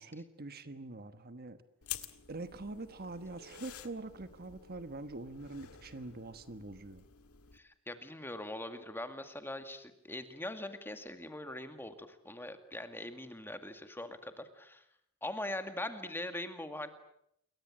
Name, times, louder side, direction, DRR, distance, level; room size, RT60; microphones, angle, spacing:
voice 1, 0.0-1.6 2.3-7.1, right 2 dB, 45° right, 11 dB, 1.3 m, -44 dB
sound 1, 1.8-7.6, left 11 dB, 80° left, 1.8 m, -49 dB
sound 2, 2.6-6.9 10.2-10.3, left 1 dB, 80° right, 4.9 m, -65 dB
voice 2, 7.5-14.8 15.2-16.9, left 1 dB, 10° left, 8 dB, 2.1 m, -42 dB
29.0 x 22.5 x 7.6 m, 0.75 s
head